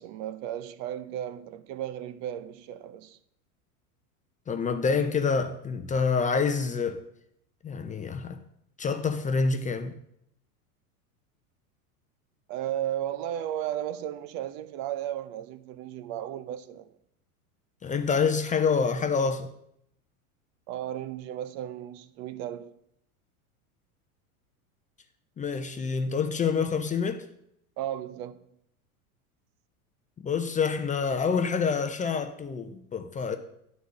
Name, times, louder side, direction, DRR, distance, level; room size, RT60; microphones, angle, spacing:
voice 1, 0.0-3.2 12.5-16.9 20.7-22.8 27.8-28.5, right 11 dB, 50° right, 0.7 m, -35 dB
voice 2, 4.5-7.0 7.6-8.4 8.8-10.0 17.8-19.5 25.4-27.3 30.2-33.4, left 5 dB, 20° left, 0.6 m, -27 dB
11.0 x 4.2 x 6.3 m
hypercardioid pair, 110°, 44 cm